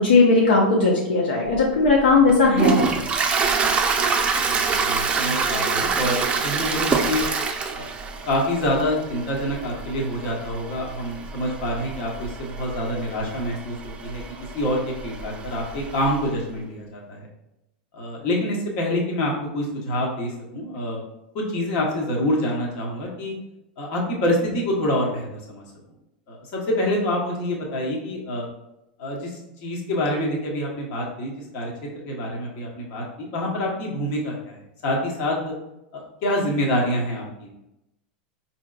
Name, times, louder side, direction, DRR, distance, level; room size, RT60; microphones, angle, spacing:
voice 1, 0.0-2.9, left 3 dB, 85° left, -3 dB, 0.7 m, -17 dB
Toilet flush, 1.5-16.3, right 5 dB, 25° right, 0.4 m, -26 dB
voice 2, 4.3-7.2 7.7-7.9 8.3-14.2 14.5-17.2 17.9-21.0 21.3-23.3 23.8-25.6 26.3-28.5 29.0-31.7 32.0-34.6 34.8-35.5 35.9-37.5, left 1 dB, 55° left, -2 dB, 1.1 m, -26 dB
4.3 x 2.8 x 2.4 m, 0.89 s
hypercardioid pair, 110°, 5 cm